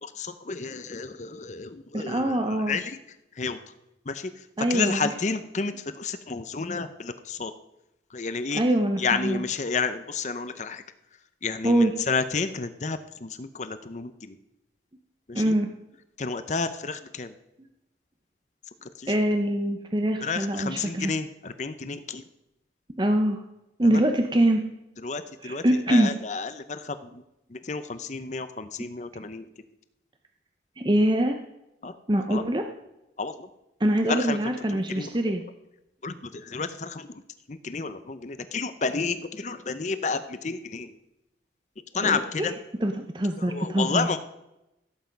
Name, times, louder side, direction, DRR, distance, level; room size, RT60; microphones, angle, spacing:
voice 1, 0.0-3.0 3.4-3.6 4.1-4.4 4.7-7.5 8.1-8.6 9.0-10.8 11.4-14.4 15.3-15.5 16.2-17.3 18.8-19.1 20.2-22.2 23.8-24.0 25.0-27.2 27.5-29.4 31.8-31.9 32.3-32.4 33.2-33.5 34.1-34.4 34.7-35.1 36.0-37.2 37.5-40.9 41.9-42.5 43.4-44.2, left 4 dB, 40° left, 11 dB, 0.6 m, -31 dB
voice 2, 1.9-2.8 4.6-5.1 8.5-9.4 11.6-11.9 15.3-15.7 19.1-21.1 23.0-23.4 23.8-24.6 25.4-26.1 30.8-31.4 32.1-32.7 33.8-35.4 42.0-42.5 42.8-44.1, right 1 dB, 25° right, 5 dB, 0.7 m, -24 dB
16.0 x 8.1 x 5.2 m, 0.90 s
head